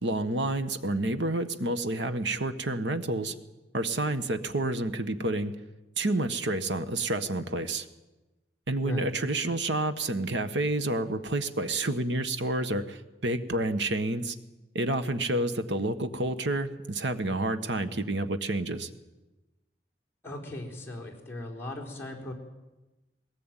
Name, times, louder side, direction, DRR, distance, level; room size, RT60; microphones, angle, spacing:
voice 1, 0.0-3.3 3.7-5.5 6.0-7.9 8.7-14.3 14.7-18.9, right 2 dB, 85° right, 10 dB, 1.5 m, -29 dB
voice 2, 20.2-22.3, left 1 dB, 15° left, -3 dB, 4.1 m, -37 dB
21.0 x 18.0 x 9.2 m, 1.1 s
head